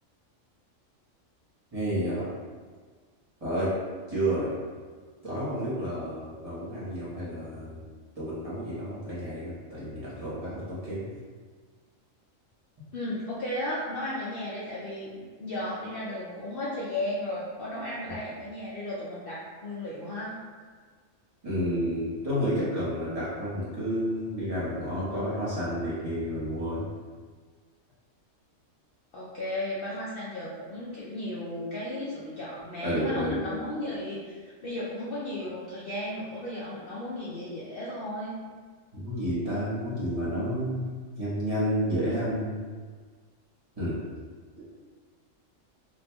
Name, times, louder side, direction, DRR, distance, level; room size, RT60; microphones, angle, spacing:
voice 1, 1.7-2.3 3.4-3.7 4.1-4.6 5.2-7.8 8.2-11.1 21.4-26.8 32.8-33.4 38.9-40.8 41.2-42.6 43.8-44.0 44.6-44.7, equal, 30° right, -10 dB, 1.0 m, -30 dB
voice 2, 12.9-20.4 29.1-38.4, left 1 dB, 60° left, -7 dB, 0.6 m, -35 dB
4.2 x 2.5 x 2.2 m, 1.5 s
omnidirectional pair, 1.4 m